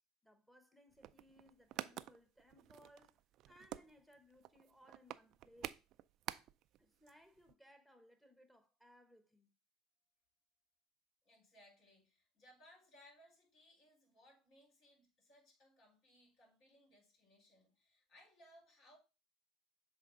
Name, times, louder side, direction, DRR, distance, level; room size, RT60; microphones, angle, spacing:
voice 1, 0.2-3.2 3.5-5.8 6.8-9.5, equal, 5° left, 1.3 m, -65 dB
sound 1, 0.9-6.8 7.1-7.2 7.4-7.5, right 13 dB, 60° right, 0.3 m, -48 dB
voice 2, 11.2-19.0, equal, 60° left, 4.2 m, -66 dB
7.5 x 3.5 x 3.9 m
supercardioid pair, 95°, 0 cm